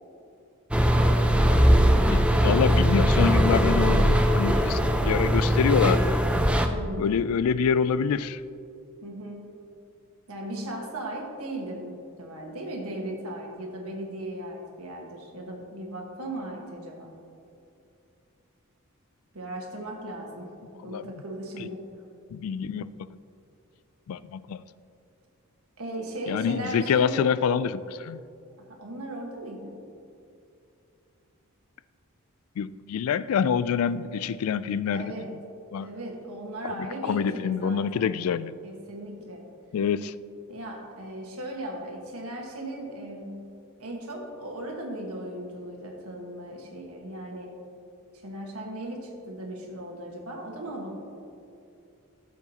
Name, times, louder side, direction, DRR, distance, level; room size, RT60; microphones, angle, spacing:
sound 1, 0.7-6.7, equal, 5° right, 0.4 m, -20 dB
voice 1, 2.1-6.2 7.0-8.4 20.8-21.1 21.6-21.7 22.3-23.1 24.1-24.6 26.3-28.2 32.6-35.1 35.7-35.9 36.6-38.5 39.7-40.1, left 7 dB, 75° left, 17 dB, 0.3 m, -26 dB
voice 2, 6.6-7.1 9.0-9.6 10.3-17.1 19.3-21.8 25.8-27.2 28.6-29.8 34.9-35.4 35.8-38.1 38.6-39.5 40.5-43.4 43.8-47.5 48.1-50.9, right 1 dB, 90° right, 1 dB, 1.5 m, -37 dB
13.5 x 7.3 x 2.9 m, 2.6 s
head